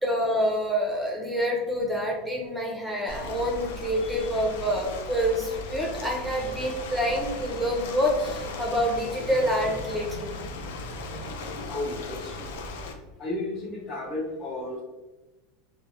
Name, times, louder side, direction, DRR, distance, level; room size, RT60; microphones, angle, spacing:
voice 1, 0.0-10.6 11.1-11.3, equal, 5° right, -2 dB, 0.6 m, -27 dB
Ocean, 3.1-12.9, left 3 dB, 85° left, 0.3 m, -37 dB
voice 2, 11.7-12.5 13.2-14.8, left 2 dB, 30° left, -4 dB, 0.9 m, -33 dB
2.7 x 2.1 x 2.5 m, 1.1 s
supercardioid pair, 140°, 0 cm